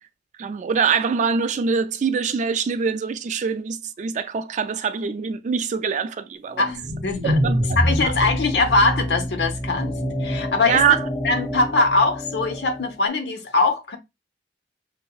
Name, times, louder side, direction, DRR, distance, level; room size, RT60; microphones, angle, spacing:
voice 1, 0.4-6.6 7.2-7.6 8.0-8.3 10.6-11.1, right 6 dB, 40° right, 0.3 m, -24 dB
voice 2, 6.6-7.4 7.8-10.8 11.2-14.0, left 3 dB, 65° left, 0.8 m, -22 dB
sound 1, 6.6-12.9, equal, 20° left, 1.1 m, -26 dB
6.2 x 2.1 x 2.3 m
head